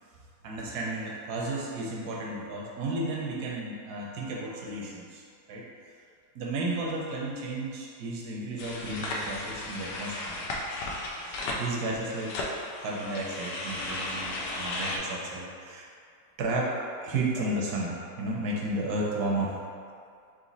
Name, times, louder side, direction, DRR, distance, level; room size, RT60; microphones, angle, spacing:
voice 1, 0.4-5.2 5.5-5.6 6.3-10.3 11.2-12.3 12.8-15.9 16.4-16.7 17.0-19.5, right 2 dB, 65° right, -3 dB, 1.1 m, -33 dB
sound 1, 8.6-15.0, left 2 dB, 75° left, 1.2 m, -35 dB
4.0 x 3.0 x 3.9 m, 2.3 s
omnidirectional pair, 2.0 m